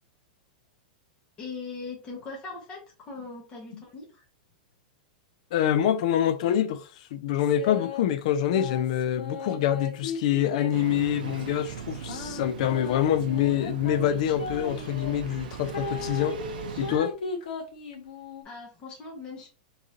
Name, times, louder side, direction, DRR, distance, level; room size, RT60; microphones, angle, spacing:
voice 1, 1.4-4.3 18.4-19.5, left 4 dB, 20° left, 1.1 m, -40 dB
voice 2, 5.5-16.4 16.8-17.1, left 10 dB, 50° left, 0.4 m, -26 dB
sound 1, 7.4-8.0 8.5-11.4 12.1-15.1 15.7-18.4, left 4 dB, 75° left, 1.1 m, -37 dB
Engine starting, 10.7-17.0, right 7 dB, 75° right, 0.5 m, -39 dB
3.7 x 3.2 x 2.6 m
supercardioid pair, 165°, 5 cm